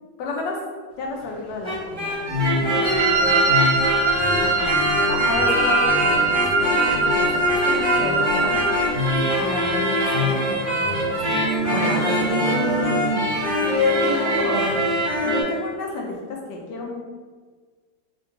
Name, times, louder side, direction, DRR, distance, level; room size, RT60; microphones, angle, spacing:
voice 1, 0.2-0.6 1.0-2.3 2.8-3.6 4.2-4.7 5.1-7.3 7.6-8.7 9.4-11.2 11.7-13.0 14.1-14.3 14.5-14.7 15.2-17.0, left 3 dB, 80° left, -1 dB, 1.2 m, -32 dB
sound 1, 1.5-15.4, equal, 40° right, 0.9 m, -23 dB
Wind instrument woodwind instrument, 2.8-8.9, right 4 dB, 90° right, 1.3 m, -22 dB
voice 2, 11.6-14.9, left 2 dB, 65° right, -6 dB, 0.9 m, -27 dB
3.7 x 2.2 x 2.7 m, 1.5 s
omnidirectional pair, 1.9 m